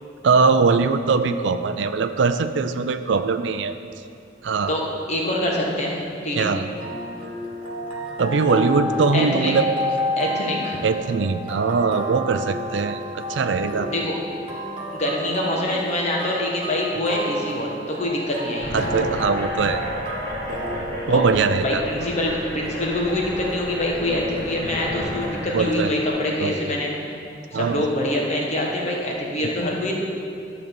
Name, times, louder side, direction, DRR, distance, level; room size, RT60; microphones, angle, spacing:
voice 1, 0.2-3.7 4.4-4.7 6.4-6.7 8.2-9.7 10.8-13.9 18.7-20.1 21.1-21.8 25.5-25.9 26.4-26.6 27.5-27.8, right 4 dB, 75° right, 10 dB, 0.4 m, -21 dB
voice 2, 5.1-6.0 6.2-6.5 9.1-9.5 10.2-10.8 13.9-14.1 14.9-18.9 21.1-21.2 21.6-26.9 27.5-29.9, left 1 dB, 40° left, -2 dB, 1.4 m, -25 dB
sound 1, 6.8-26.1, left 1 dB, 30° right, 1.6 m, -31 dB
sound 2, 18.6-25.7, left 1 dB, 15° left, 2.5 m, -32 dB
12.0 x 4.0 x 7.0 m, 2.5 s
head